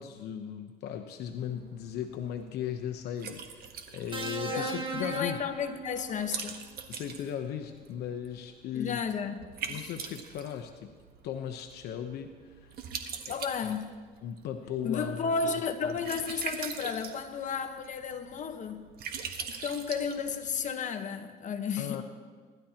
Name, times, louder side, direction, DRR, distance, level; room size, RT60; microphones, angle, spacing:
voice 1, 0.0-5.4 6.9-9.0 9.7-10.9 11.2-12.7 13.3-13.4 13.6-13.7 14.2-15.2 15.8-15.9 21.8-22.0, left 9 dB, 75° left, 5 dB, 0.9 m, -37 dB
Liquid, 1.3-20.7, right 6 dB, 65° right, 1.3 m, -43 dB
sound 1, 4.1-6.4 7.7-7.9, right 4 dB, 30° right, 1.4 m, -38 dB
voice 2, 4.5-6.6 8.7-9.4 9.7-9.9 13.3-13.9 14.8-18.8 19.6-22.0, left 6 dB, 45° left, 7 dB, 1.2 m, -33 dB
25.0 x 12.0 x 2.9 m, 1.5 s
cardioid pair, 110°, 17 cm